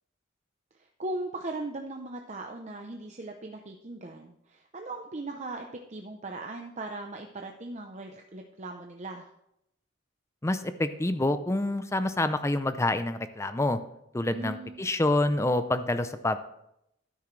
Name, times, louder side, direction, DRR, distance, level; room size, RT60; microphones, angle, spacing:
voice 1, 1.0-9.3 14.2-14.8, right 2 dB, 35° right, 3 dB, 0.7 m, -38 dB
voice 2, 10.4-13.8 14.1-16.4, left 2 dB, 15° left, 11 dB, 0.5 m, -27 dB
12.0 x 9.8 x 3.2 m, 0.80 s
head